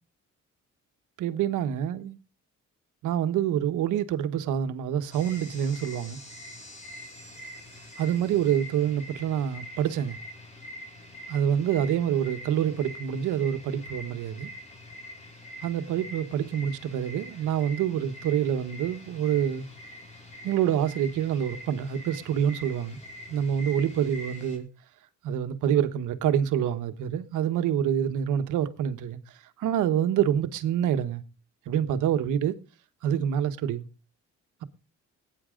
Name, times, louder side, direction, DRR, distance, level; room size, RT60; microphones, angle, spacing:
voice 1, 1.2-2.2 3.0-6.2 8.0-10.2 11.3-14.5 15.6-19.7 20.4-23.0 23.3-24.7 25.2-29.2 29.6-31.2 31.7-32.5 33.0-33.9, right 9 dB, 90° right, 1.2 m, -26 dB
sound 1, 5.1-24.6, left 1 dB, 25° left, 5.3 m, -45 dB
18.5 x 9.6 x 3.8 m
cardioid pair, 90°, 30 cm